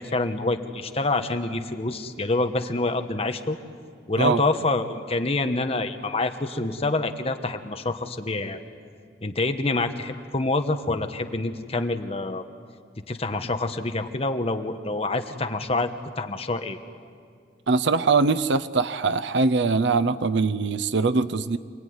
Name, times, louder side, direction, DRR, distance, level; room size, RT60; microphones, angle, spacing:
voice 1, 0.0-3.6 4.1-8.6 9.2-12.4 13.1-15.9 16.2-16.8, left 2 dB, 35° left, 7 dB, 1.2 m, -26 dB
voice 2, 17.7-21.6, right 4 dB, 75° right, 11 dB, 0.7 m, -22 dB
27.0 x 19.0 x 9.6 m, 2.1 s
head